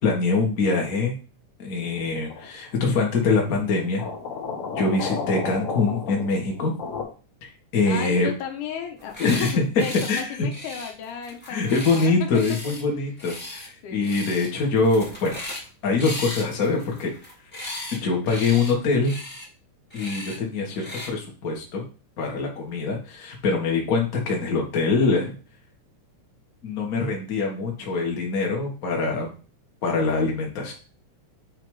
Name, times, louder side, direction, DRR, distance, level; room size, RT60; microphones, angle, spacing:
voice 1, 0.0-1.1 1.6-4.0 4.7-6.7 7.7-8.3 9.2-9.5 10.1-10.3 11.5-15.4 15.8-17.1 17.9-19.1 19.9-21.8 22.2-25.3 26.6-29.3 29.8-30.7, left 3 dB, 40° left, 0 dB, 1.2 m, -24 dB
sound 1, 2.3-2.7 4.0-7.0, left 4 dB, 60° left, 2.2 m, -32 dB
voice 2, 7.8-12.1 13.8-14.1, left 8 dB, 80° left, 3 dB, 2.5 m, -34 dB
sound 2, 9.0-9.5 9.8-10.2 10.5-12.8 13.2-13.7 14.0-14.5 14.8-15.7 16.0-18.0 18.2-18.7 19.0-19.5 19.9-20.4 20.8-21.1, left 1 dB, 5° left, 1.1 m, -36 dB
7.2 x 2.9 x 4.7 m, 0.37 s
omnidirectional pair, 3.6 m